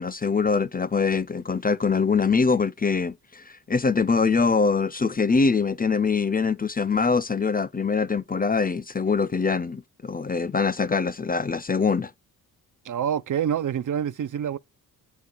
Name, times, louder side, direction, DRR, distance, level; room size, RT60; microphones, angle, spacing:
voice 1, 0.0-12.1, left 5 dB, 25° left, 0.5 m, -23 dB
voice 2, 12.8-14.6, right 9 dB, 50° right, 0.6 m, -26 dB
8.1 x 3.1 x 5.2 m
cardioid pair, 65°, 39 cm